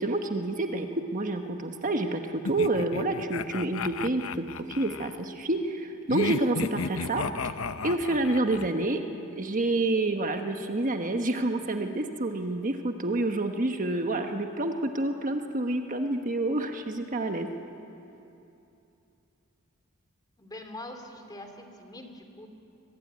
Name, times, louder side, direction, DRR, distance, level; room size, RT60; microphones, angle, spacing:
voice 1, 0.0-4.5 4.8-7.2 7.8-9.0 9.3-17.5, right 2 dB, 40° right, 5 dB, 1.2 m, -28 dB
sound 1, 2.4-5.1 6.1-8.7, left 5 dB, 70° left, 0.7 m, -34 dB
voice 2, 20.4-22.5, left 1 dB, 20° left, 6 dB, 2.6 m, -43 dB
24.5 x 22.5 x 9.5 m, 2.8 s
head